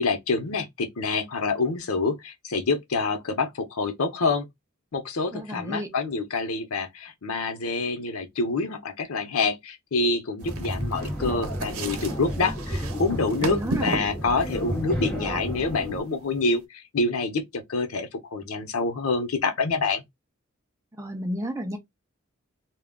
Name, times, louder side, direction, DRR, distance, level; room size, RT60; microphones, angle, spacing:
voice 1, 0.0-4.5 4.9-20.0, left 3 dB, 85° left, 0.7 m, -27 dB
voice 2, 5.3-5.9 13.4-14.0 21.0-21.8, equal, 15° right, 0.5 m, -32 dB
sound 1, 10.4-16.0, equal, 10° left, 1.2 m, -32 dB
sound 2, 10.4-16.6, right 2 dB, 90° right, 0.7 m, -36 dB
2.2 x 2.2 x 3.5 m
head